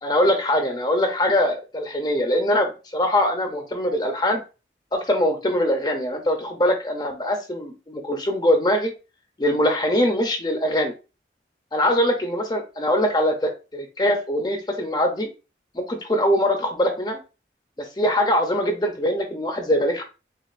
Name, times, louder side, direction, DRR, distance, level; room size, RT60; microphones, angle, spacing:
voice 1, 0.0-4.4 4.9-8.9 9.4-10.9 11.7-15.3 15.7-17.2 17.8-20.0, left 1 dB, 25° left, 4 dB, 0.6 m, -22 dB
6.4 x 2.4 x 2.4 m, 0.31 s
head